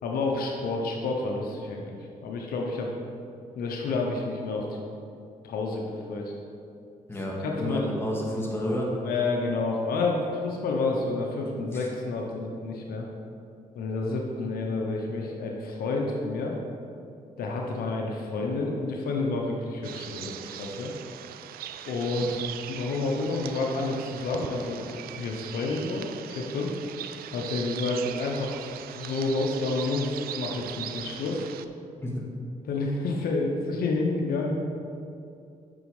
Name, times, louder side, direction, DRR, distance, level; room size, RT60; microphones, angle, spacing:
voice 1, 0.0-2.9 3.5-4.8 5.4-6.3 7.4-7.9 9.0-13.1 13.7-16.6 17.4-20.9 21.9-22.4 22.7-26.7 27.3-28.6 28.9-31.5 32.6-34.6, left 3 dB, 85° left, 0 dB, 1.1 m, -29 dB
voice 2, 7.1-8.9 11.7-11.9 32.0-32.2, equal, 15° left, -3 dB, 2.3 m, -30 dB
sound 1, 19.8-31.7, right 11 dB, 85° right, 0.4 m, -40 dB
8.8 x 6.3 x 5.0 m, 2.6 s
cardioid pair, 65°, 15 cm